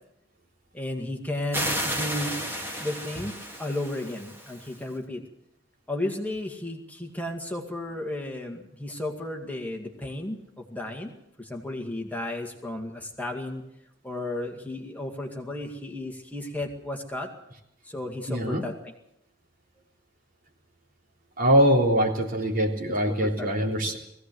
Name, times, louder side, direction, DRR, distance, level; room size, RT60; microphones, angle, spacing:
voice 1, 0.7-2.4 2.8-5.2 5.9-11.1 11.4-13.6 14.0-17.3 17.9-18.9 22.9-23.9, left 1 dB, 10° left, 2 dB, 2.2 m, -34 dB
sound 1, 1.5-4.8, equal, 10° right, 2.8 m, -32 dB
voice 2, 18.3-18.6 21.4-24.0, equal, 50° right, 0 dB, 3.6 m, -23 dB
20.5 x 16.5 x 7.9 m, 0.78 s
head